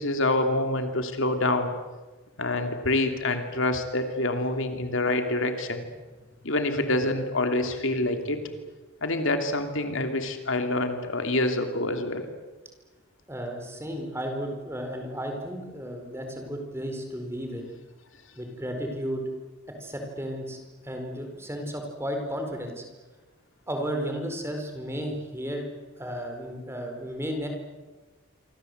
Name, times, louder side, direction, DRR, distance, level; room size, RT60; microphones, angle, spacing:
voice 1, 0.0-1.7 2.4-5.9 6.4-8.4 9.0-12.3, left 2 dB, 60° left, 6 dB, 2.9 m, -26 dB
voice 2, 8.0-8.5 13.3-17.6 18.4-19.2 19.8-22.8 23.7-25.7 26.0-27.5, equal, 10° right, 4 dB, 4.6 m, -34 dB
27.5 x 25.0 x 8.1 m, 1.2 s
head